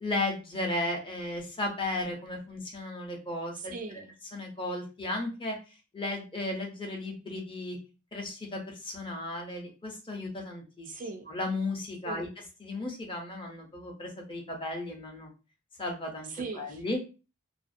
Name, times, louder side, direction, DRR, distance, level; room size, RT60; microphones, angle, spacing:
voice 1, 0.0-3.7 4.3-5.6 5.9-7.8 8.1-11.0 11.3-12.3 12.6-15.3 15.8-16.3 16.6-17.0, left 2 dB, 25° left, 1 dB, 0.6 m, -35 dB
voice 2, 3.5-4.2 10.9-11.3 12.0-12.3 16.3-16.8, right 4 dB, 40° right, 6 dB, 0.3 m, -39 dB
2.4 x 2.0 x 2.5 m, 0.32 s
head